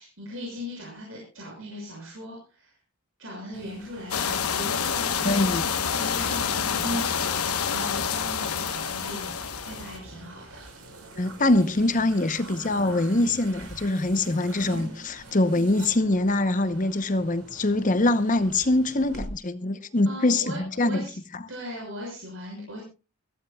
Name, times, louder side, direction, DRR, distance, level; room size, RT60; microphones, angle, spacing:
voice 1, 0.0-2.8 3.2-9.3 9.6-11.2 20.0-21.1 21.5-22.8, equal, 65° right, 6.3 m, -39 dB
sound 1, 3.5-19.3, right 1 dB, 85° right, 5.8 m, -42 dB
sound 2, 4.1-10.0, left 7 dB, 85° left, 1.1 m, -28 dB
voice 2, 5.2-5.6 11.2-21.0 21.3-21.4, left 2 dB, 35° left, 0.8 m, -24 dB
23.5 x 16.0 x 2.3 m
head